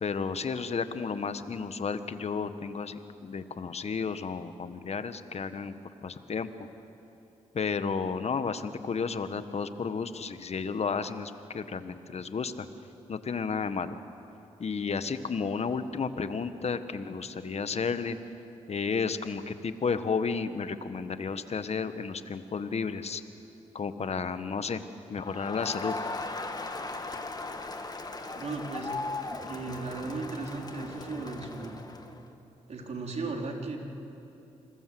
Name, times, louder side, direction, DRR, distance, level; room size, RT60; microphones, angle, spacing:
voice 1, 0.0-5.7 6.0-6.7 7.5-12.7 13.1-14.0 14.6-18.2 18.7-23.2 23.7-24.8 25.1-25.9, left 5 dB, 50° left, 11 dB, 1.5 m, -32 dB
Crowd, 25.2-32.2, left 3 dB, 30° left, 2.2 m, -38 dB
voice 2, 28.3-28.9 29.5-31.8 32.7-33.8, right 3 dB, 55° right, 1 dB, 4.1 m, -36 dB
27.5 x 21.0 x 7.8 m, 2.9 s
supercardioid pair, 55°, 14 cm